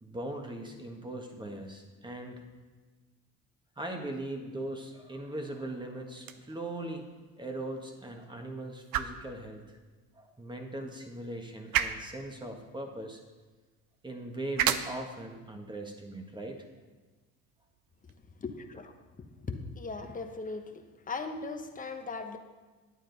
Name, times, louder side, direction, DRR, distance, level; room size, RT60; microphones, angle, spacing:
voice 1, 0.0-2.4 3.8-7.0 7.4-9.8 10.1-13.2 14.0-16.6, right 1 dB, 15° right, 3 dB, 1.5 m, -40 dB
sound 1, 6.1-18.2, right 10 dB, 70° right, 0.7 m, -38 dB
voice 2, 18.4-18.9 19.5-22.4, left 4 dB, 20° left, 5 dB, 1.0 m, -38 dB
9.5 x 8.7 x 4.0 m, 1.3 s
supercardioid pair, 85°, 36 cm